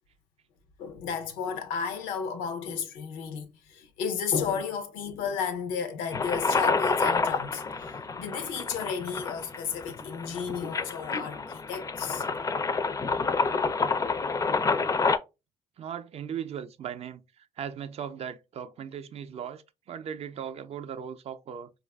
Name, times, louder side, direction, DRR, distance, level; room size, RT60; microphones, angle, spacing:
voice 1, 0.8-12.2, left 6 dB, 90° left, 0.6 m, -33 dB
sound 1, 6.1-15.2, left 4 dB, 25° left, 0.4 m, -28 dB
voice 2, 15.8-21.7, right 8 dB, 50° right, 0.4 m, -38 dB
4.5 x 2.4 x 2.2 m
supercardioid pair, 75°, 14 cm